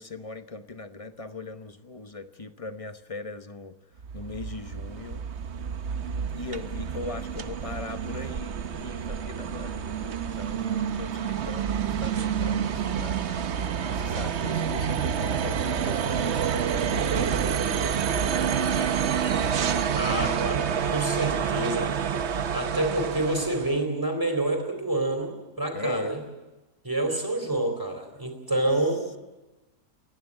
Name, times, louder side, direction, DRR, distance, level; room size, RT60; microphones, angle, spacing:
voice 1, 0.0-3.8 4.1-5.2 6.3-13.2 13.9-17.7 25.7-26.1, left 3 dB, 25° left, 9 dB, 0.9 m, -39 dB
sound 1, 4.0-23.8, right 7 dB, 50° right, 1.0 m, -28 dB
voice 2, 19.9-20.6 20.9-22.0 22.5-26.2 26.8-29.0, right 1 dB, 15° right, 4 dB, 3.9 m, -28 dB
29.0 x 11.0 x 9.9 m, 1.1 s
omnidirectional pair, 1.7 m